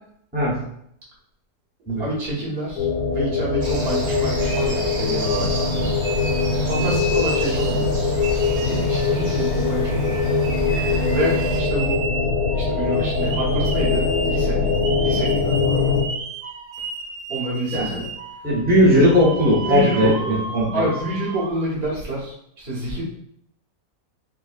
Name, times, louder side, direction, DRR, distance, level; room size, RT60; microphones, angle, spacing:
voice 1, 2.0-5.9 6.6-7.9 8.6-10.3 11.1-12.0 12.5-14.7 15.0-16.0 17.3-18.1 19.6-20.4 20.7-23.0, right 1 dB, 45° right, -5 dB, 1.3 m, -28 dB
sound 1, 2.8-16.0, left 4 dB, 75° left, 1.0 m, -22 dB
sound 2, 3.6-11.6, right 2 dB, 65° right, 1.3 m, -31 dB
sound 3, 5.2-7.9 8.2-21.6, right 4 dB, 85° right, 1.1 m, -34 dB
voice 2, 18.4-20.8, equal, 10° right, -6 dB, 0.6 m, -18 dB
4.8 x 2.1 x 2.4 m, 0.71 s
omnidirectional pair, 1.7 m